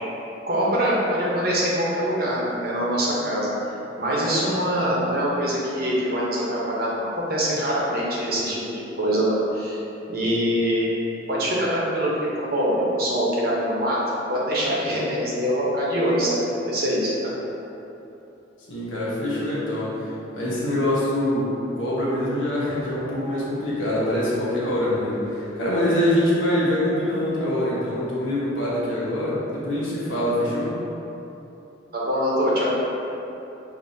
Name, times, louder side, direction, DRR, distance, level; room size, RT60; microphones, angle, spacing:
voice 1, 0.5-3.5 4.0-9.8 10.1-10.9 11.3-12.1 12.3-14.0 14.3-17.3 31.9-32.7, equal, 50° right, -6 dB, 0.8 m, -24 dB
voice 2, 18.7-30.7, left 1 dB, 90° left, -7 dB, 1.1 m, -24 dB
5.3 x 2.7 x 2.7 m, 3.0 s
head